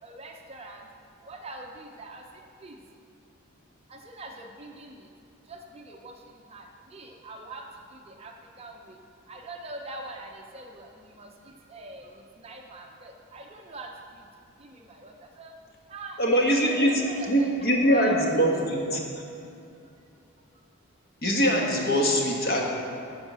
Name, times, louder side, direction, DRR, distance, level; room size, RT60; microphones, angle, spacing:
voice 1, 0.0-0.9 1.2-2.2 2.6-2.8 3.9-5.1 5.5-6.7 6.9-7.6 7.9-9.0 9.3-14.2 14.6-15.5 15.9-18.2 18.7-18.9, right 2 dB, 30° right, 2 dB, 0.7 m, -44 dB
voice 2, 16.2-19.1 21.2-22.6, equal, 45° left, -1 dB, 1.4 m, -23 dB
12.0 x 4.9 x 6.8 m, 2.6 s
head